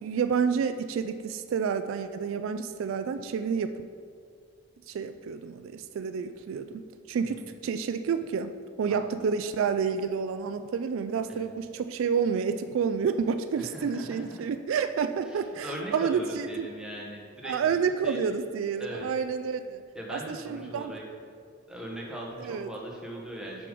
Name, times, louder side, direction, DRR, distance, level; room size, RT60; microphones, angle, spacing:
voice 1, 0.0-3.8 4.9-16.7 17.4-19.8 20.1-20.9 22.4-22.7, right 6 dB, 70° right, 9 dB, 0.3 m, -29 dB
voice 2, 8.9-9.3 11.3-11.5 13.6-14.4 15.2-17.6 18.0-18.2 18.8-19.1 19.9-21.0 21.7-23.7, right 1 dB, 5° right, -3 dB, 1.1 m, -40 dB
6.7 x 5.0 x 5.1 m, 2.2 s
head